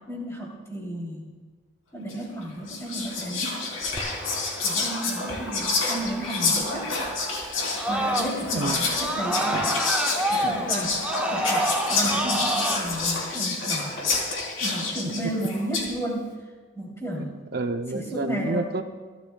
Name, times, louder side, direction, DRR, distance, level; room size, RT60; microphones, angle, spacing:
voice 1, 0.1-1.2 1.9-3.6 4.6-6.9 7.9-9.7 10.3-11.0 11.3-13.9 14.6-16.3 16.7-17.3 17.9-18.7, right 1 dB, 15° left, -3 dB, 2.9 m, -32 dB
Whispering, 2.1-2.3 2.7-15.9, left 3 dB, 90° left, 3.4 m, -28 dB
Screaming, 4.0-8.6 8.9-12.8, right 1 dB, 5° right, 0.8 m, -29 dB
sound 1, 7.5-12.6, left 2 dB, 60° left, 1.1 m, -38 dB
voice 2, 8.5-9.0 15.0-15.4 17.1-18.8, right 3 dB, 50° right, 6 dB, 0.5 m, -30 dB
27.5 x 12.5 x 2.3 m, 1.4 s
head